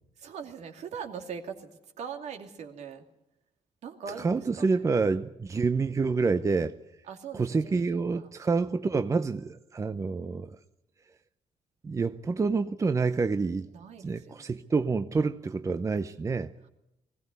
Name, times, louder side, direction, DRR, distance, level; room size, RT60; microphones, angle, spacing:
voice 1, 0.2-3.0 3.8-5.0 7.1-8.6 13.7-14.7, right 6 dB, 70° right, 2.5 m, -42 dB
voice 2, 4.2-6.8 7.3-10.6 11.8-13.7 14.0-16.5, right 4 dB, 25° right, 0.7 m, -28 dB
20.5 x 16.5 x 9.6 m
cardioid pair, 110°, 12 cm